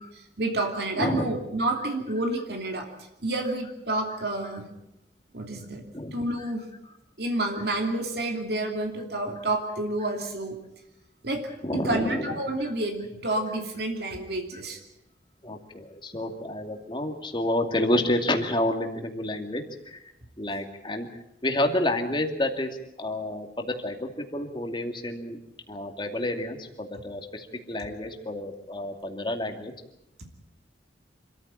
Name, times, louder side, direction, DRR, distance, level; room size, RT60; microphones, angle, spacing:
voice 1, 0.1-2.9 3.2-4.7 5.3-6.6 7.2-10.6 11.2-14.8, right 2 dB, 60° right, 3 dB, 2.8 m, -29 dB
voice 2, 1.0-1.3 5.9-6.5 11.6-12.3 12.6-12.7 15.4-19.6 19.9-20.0 20.4-21.1 21.4-22.7 23.0-25.4 25.7-29.7, left 1 dB, 25° left, 4 dB, 2.4 m, -29 dB
26.5 x 14.0 x 9.0 m, 0.87 s
head